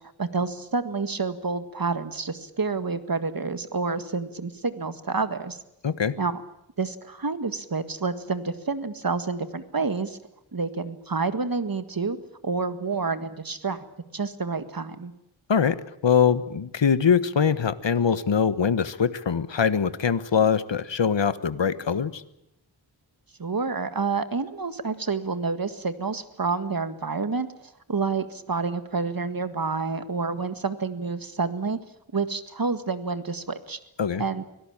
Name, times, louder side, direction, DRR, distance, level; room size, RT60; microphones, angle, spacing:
voice 1, 0.2-5.6 6.2-6.4 6.8-10.2 10.5-12.2 12.4-13.8 14.1-15.1 23.4-27.5 27.9-31.8 32.1-33.8 34.2-34.4, right 4 dB, 45° right, 11 dB, 1.8 m, -28 dB
voice 2, 5.8-6.1 15.5-15.8 16.0-22.1 34.0-34.2, left 7 dB, 65° left, 14 dB, 1.3 m, -22 dB
24.5 x 17.5 x 8.8 m, 0.83 s
wide cardioid pair, 60°, 47 cm